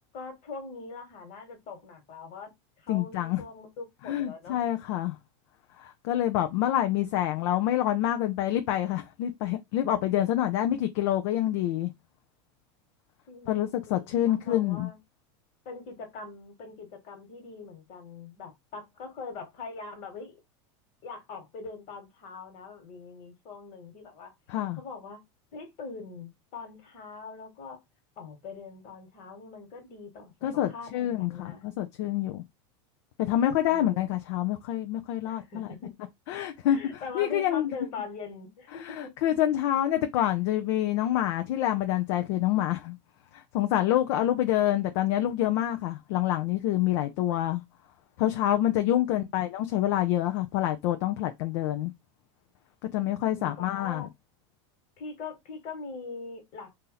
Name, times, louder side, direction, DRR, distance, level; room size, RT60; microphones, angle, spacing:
voice 1, 0.1-2.5 2.8-4.6 13.3-15.0 15.7-20.4 21.0-24.3 24.7-25.2 25.5-27.8 28.2-30.3 30.7-31.6 33.7-34.0 35.3-35.9 36.7-39.1 49.0-49.5 53.3-54.1 55.0-56.8, left 4 dB, 50° left, 1.6 m, -42 dB
voice 2, 2.9-3.4 4.1-5.2 5.8-11.9 13.5-14.9 24.5-24.8 30.4-32.4 33.2-35.7 36.3-37.7 38.8-43.0 43.3-47.6 48.2-51.9 52.9-54.1, left 12 dB, 65° left, 0.5 m, -27 dB
2.8 x 2.6 x 3.8 m
supercardioid pair, 115°, 15 cm